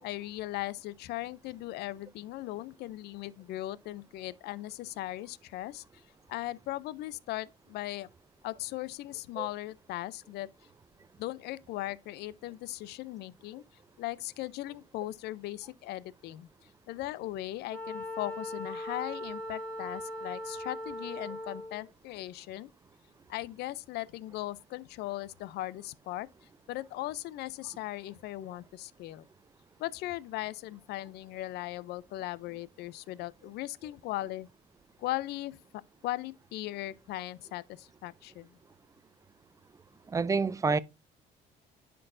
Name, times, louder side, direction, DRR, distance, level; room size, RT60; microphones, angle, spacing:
voice 1, 0.0-5.8 6.3-8.1 8.4-10.5 11.2-13.6 14.0-16.5 16.9-22.7 23.3-26.3 26.7-29.2 29.8-34.5 35.0-35.6 36.0-38.5, left 16 dB, 75° left, 0.5 m, -38 dB
Wind instrument woodwind instrument, 17.7-21.9, left 1 dB, 5° left, 1.9 m, -39 dB
voice 2, 40.1-40.8, right 4 dB, 20° right, 0.4 m, -27 dB
10.0 x 4.4 x 2.5 m
cardioid pair, 110°, 17 cm